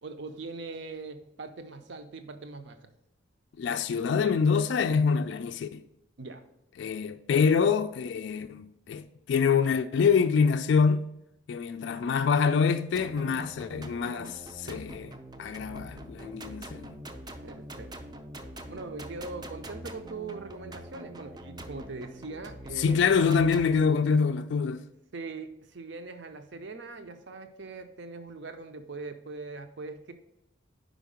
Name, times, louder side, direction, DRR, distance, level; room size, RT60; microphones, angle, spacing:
voice 1, 0.0-2.9 6.2-6.4 17.4-17.9 18.7-23.1 25.1-30.1, right 3 dB, 65° right, 0.6 m, -41 dB
voice 2, 3.6-5.8 6.8-11.1 11.5-17.0 22.8-24.8, left 5 dB, 65° left, 0.3 m, -26 dB
sound 1, 12.9-23.8, right 1 dB, 20° right, 0.4 m, -44 dB
5.1 x 4.6 x 5.0 m
head